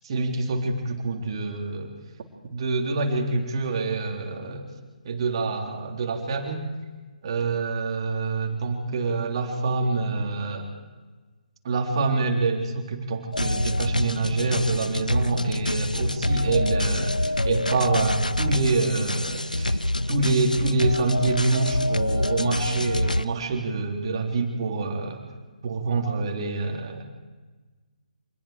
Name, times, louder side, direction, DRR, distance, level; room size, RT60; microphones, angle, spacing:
voice 1, 0.0-1.9 2.5-4.6 5.0-6.7 7.2-10.7 11.6-25.2 25.6-27.0, right 3 dB, 40° right, 2 dB, 3.5 m, -26 dB
sound 1, 13.3-23.3, left 1 dB, 90° left, 0.7 m, -26 dB
26.5 x 20.5 x 5.0 m, 1.3 s
figure-of-eight pair, 140°, 4 cm